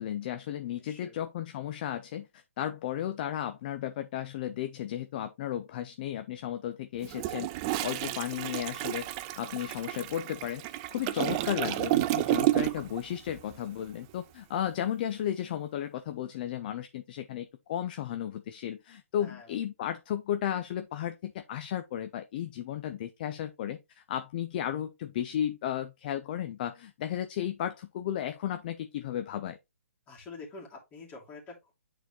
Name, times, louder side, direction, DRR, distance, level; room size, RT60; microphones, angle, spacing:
voice 1, 0.0-7.5 7.8-9.1 9.4-10.6 10.9-29.6, left 10 dB, 40° left, 0.6 m, -34 dB
voice 2, 0.8-1.1 8.1-8.5 19.2-19.5 30.1-31.7, left 3 dB, 20° left, 2.5 m, -47 dB
Toilet flush, 7.0-13.0 13.3-13.5, right 15 dB, 25° right, 0.4 m, -31 dB
9.1 x 4.0 x 2.9 m
hypercardioid pair, 140°, 8 cm